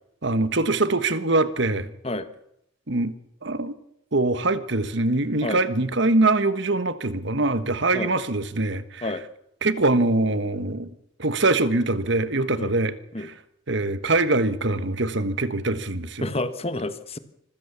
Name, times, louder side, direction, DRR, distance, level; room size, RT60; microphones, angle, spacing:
voice 1, 0.2-1.9 2.9-3.1 3.4-3.8 4.1-9.1 9.6-10.9 11.2-13.3 13.7-16.3, right 2 dB, 55° right, 1.4 m, -23 dB
voice 2, 16.2-17.2, left 2 dB, 30° left, 1.3 m, -29 dB
25.0 x 15.0 x 7.1 m
head